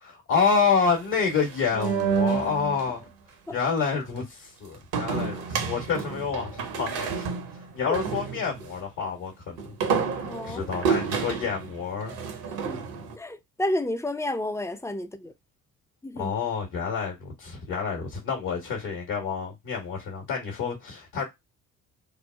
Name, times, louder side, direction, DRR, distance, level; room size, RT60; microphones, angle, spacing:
voice 1, 0.0-3.1 3.5-7.3 7.7-9.6 10.4-12.1 12.9-13.0 16.2-21.2, left 5 dB, 65° left, 1.0 m, -28 dB
sound 1, 1.0-2.9 4.9-8.8 9.6-13.1, right 6 dB, 60° right, 0.8 m, -30 dB
voice 2, 10.2-10.7 12.6-12.9 13.1-15.3 16.0-16.3, left 1 dB, 10° left, 0.3 m, -31 dB
3.1 x 2.0 x 2.2 m
hypercardioid pair, 40°, 41 cm